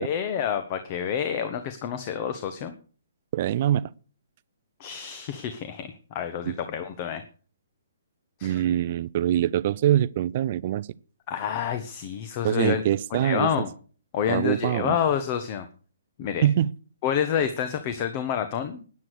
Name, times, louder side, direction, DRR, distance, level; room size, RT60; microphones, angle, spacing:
voice 1, 0.0-2.7 4.8-7.2 8.4-8.6 11.3-12.8 13.1-13.7 14.1-15.7 16.2-16.5 17.0-18.8, left 8 dB, 35° left, 1.2 m, -28 dB
voice 2, 3.3-3.9 6.4-6.5 8.4-10.9 12.4-13.5 14.3-15.0 16.4-16.7, right 12 dB, 40° right, 0.5 m, -24 dB
13.5 x 9.7 x 6.6 m
figure-of-eight pair, 130°, 0 cm